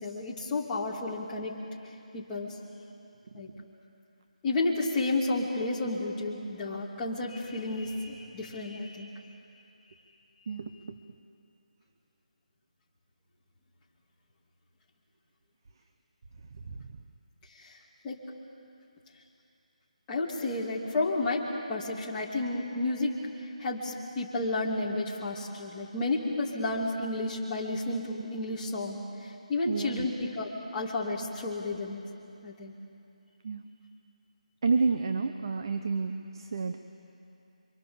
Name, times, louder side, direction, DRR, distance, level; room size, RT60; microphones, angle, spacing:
voice 1, 0.0-1.5 2.1-2.6 3.3-3.5 4.4-9.1 17.5-17.8 18.0-18.2 20.1-23.1 23.6-32.0 32.4-32.7, left 2 dB, 10° left, -6 dB, 2.7 m, -31 dB
voice 2, 16.7-17.0 29.6-30.1 33.4-33.6 34.6-36.8, right 4 dB, 35° right, 7 dB, 0.9 m, -30 dB
29.0 x 25.0 x 7.1 m, 2.7 s
figure-of-eight pair, 175°, 4 cm